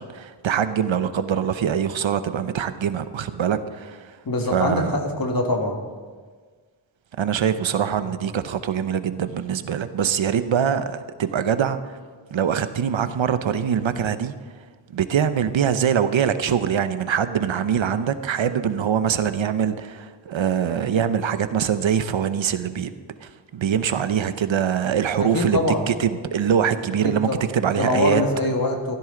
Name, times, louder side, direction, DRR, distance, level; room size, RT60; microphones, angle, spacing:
voice 1, 0.0-4.2 4.5-5.0 7.2-12.0 12.3-14.3 14.9-22.9 23.2-25.6 25.9-28.2, right 8 dB, 85° right, 11 dB, 0.8 m, -23 dB
voice 2, 4.3-5.8 8.0-8.1 25.2-25.9 27.0-27.5 27.8-29.0, left 2 dB, 50° left, 2 dB, 1.9 m, -24 dB
16.0 x 14.0 x 3.8 m, 1.5 s
wide cardioid pair, 105°, 45 cm